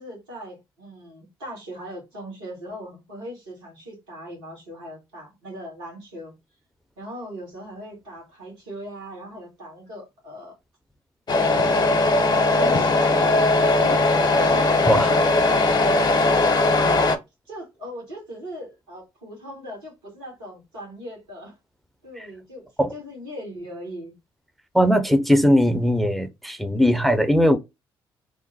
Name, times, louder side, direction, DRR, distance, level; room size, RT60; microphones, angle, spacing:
voice 1, 0.0-6.3 7.0-10.5 11.3-13.5 13.8-16.2 17.5-21.6 22.0-24.1, equal, 85° right, 1.6 m, -39 dB
Truck, 11.3-17.2, left 2 dB, 35° left, 0.8 m, -19 dB
voice 2, 24.7-27.6, equal, ahead, 0.6 m, -19 dB
3.0 x 2.1 x 4.0 m
hypercardioid pair, 45°, 12 cm